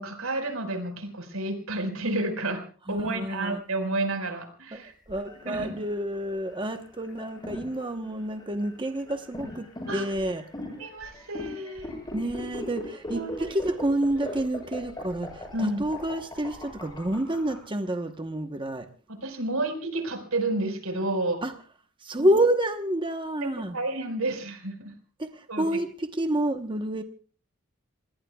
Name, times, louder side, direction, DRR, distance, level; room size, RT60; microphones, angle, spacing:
voice 1, 0.0-2.6 2.9-4.9 5.4-5.7 9.9-10.0 10.8-11.9 13.1-13.6 15.5-15.8 19.1-21.4 22.2-22.3 23.4-24.9 25.5-25.6, right 2 dB, 90° right, 7 dB, 4.9 m, -30 dB
voice 2, 2.9-3.6 4.7-10.4 12.1-18.9 21.4-21.5 22.0-23.8 25.2-27.0, right 1 dB, 25° right, 6 dB, 1.0 m, -29 dB
sound 1, 5.1-17.5, left 1 dB, 20° left, 7.5 m, -39 dB
29.5 x 20.5 x 2.3 m, 0.40 s
head